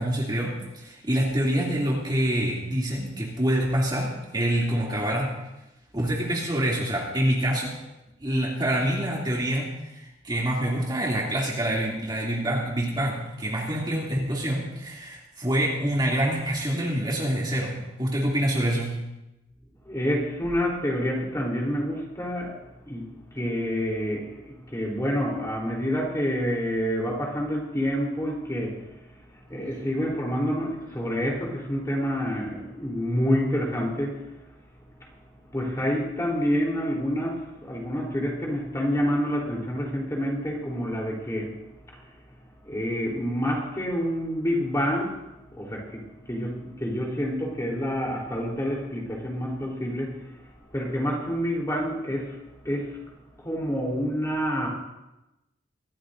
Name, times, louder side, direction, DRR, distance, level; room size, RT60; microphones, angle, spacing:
voice 1, 0.0-5.3 5.9-7.7 8.2-18.9, right 1 dB, 25° right, -4 dB, 2.7 m, -26 dB
voice 2, 19.8-34.5 35.0-35.1 35.5-42.1 42.6-53.0 53.4-54.7, equal, 15° left, -2 dB, 3.6 m, -28 dB
24.5 x 14.5 x 2.7 m, 0.96 s
head